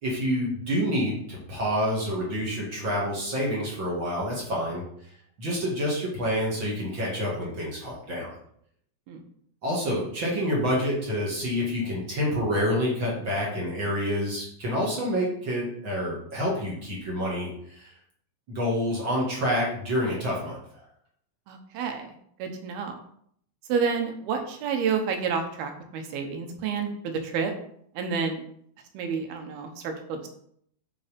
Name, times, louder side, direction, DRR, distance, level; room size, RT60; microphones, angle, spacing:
voice 1, 0.0-4.8 5.4-8.3 9.6-17.5 17.8-17.9 18.5-20.6, equal, 40° right, -4 dB, 2.2 m, -28 dB
voice 2, 21.5-22.1 22.4-22.9 23.7-27.5 28.0-28.4 28.9-30.3, right 6 dB, 90° right, 5 dB, 3.0 m, -29 dB
6.7 x 5.5 x 5.2 m, 0.67 s
omnidirectional pair, 4.3 m